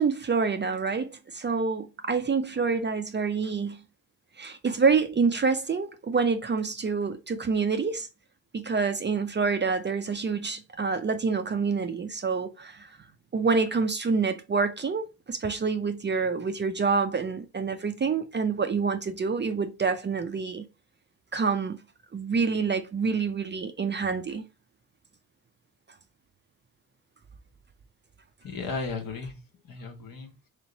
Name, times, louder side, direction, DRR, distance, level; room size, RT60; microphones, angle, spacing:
voice 1, 0.0-3.8 4.4-8.1 8.5-13.0 13.3-20.6 21.3-21.8 22.1-24.4, right 5 dB, 30° right, 0.5 m, -27 dB
voice 2, 28.4-30.5, left 4 dB, 60° left, 1.3 m, -36 dB
3.3 x 3.1 x 4.0 m
supercardioid pair, 65°, 39 cm